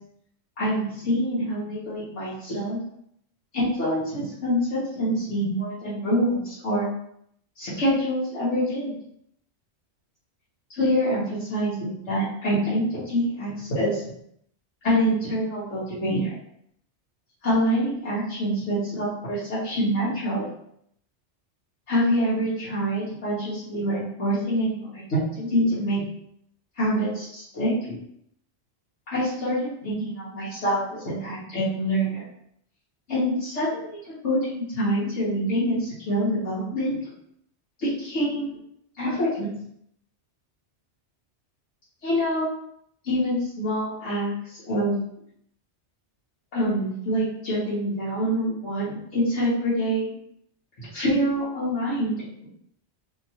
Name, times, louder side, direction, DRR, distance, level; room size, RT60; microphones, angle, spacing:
voice 1, 0.6-2.8 3.5-6.9 7.6-9.0 10.7-14.0 14.8-16.3 17.4-20.4 21.9-26.0 26.8-27.9 29.1-32.2 33.1-37.0 37.8-38.6 39.0-39.5 42.0-42.5 43.0-45.0 46.5-50.1 50.8-52.5, equal, 85° left, -11 dB, 1.4 m, -26 dB
2.9 x 2.9 x 2.7 m, 0.71 s
omnidirectional pair, 1.2 m